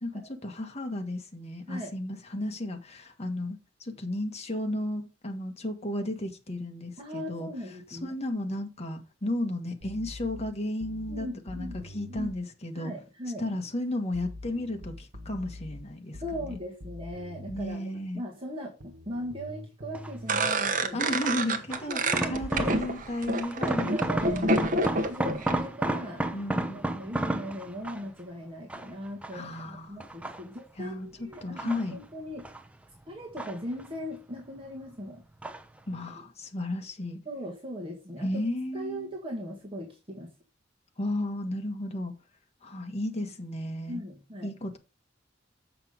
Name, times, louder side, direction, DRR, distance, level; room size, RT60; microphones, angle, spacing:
voice 1, 0.0-7.5 7.9-12.9 13.4-16.6 17.5-18.2 20.7-25.1 26.3-27.0 29.3-30.0 30.8-31.1 31.4-32.0 35.9-37.2 38.2-39.1 41.0-42.1 42.6-44.0 44.4-44.8, left 1 dB, 35° left, 1.6 m, -34 dB
voice 2, 7.0-8.1 11.1-11.8 12.1-12.3 12.8-13.4 16.2-21.1 21.9-22.4 23.6-26.2 26.7-32.4 33.1-35.2 37.3-38.4 38.7-40.3 43.9-44.5, equal, 30° right, 1.8 m, -39 dB
sound 1, 9.8-12.4 14.1-17.8 18.8-20.5, left 1 dB, 85° right, 1.3 m, -44 dB
sound 2, 19.9-20.3 21.2-23.1 23.4-28.2 28.7-29.6 30.0-30.8 31.3-32.7 32.9-34.1 34.4-35.0 35.4-35.8 36.1-36.2, right 1 dB, 5° right, 0.7 m, -33 dB
sound 3, 20.3-25.5, right 2 dB, 45° right, 1.2 m, -28 dB
7.7 x 5.8 x 5.1 m
head